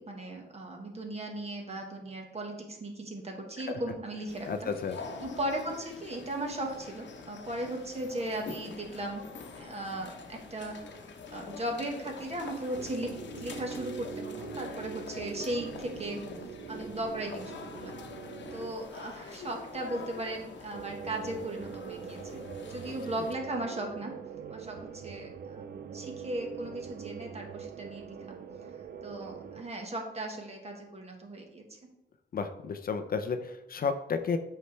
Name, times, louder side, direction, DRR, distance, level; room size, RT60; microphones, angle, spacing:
voice 1, 0.0-4.7 5.2-9.2 9.5-10.8 11.3-16.2 16.7-18.0 18.5-22.4 22.7-24.1 24.5-28.4 29.0-31.9, right 1 dB, 35° right, 2 dB, 1.4 m, -37 dB
sound 1, 4.3-23.4, left 4 dB, 65° left, 0.9 m, -45 dB
voice 2, 4.5-5.0 32.3-34.4, left 5 dB, 50° left, 8 dB, 0.5 m, -32 dB
sound 2, 12.7-18.7 20.7-29.6, right 7 dB, 55° right, 0.5 m, -43 dB
8.3 x 5.6 x 3.3 m, 0.93 s
wide cardioid pair, 125°, 20 cm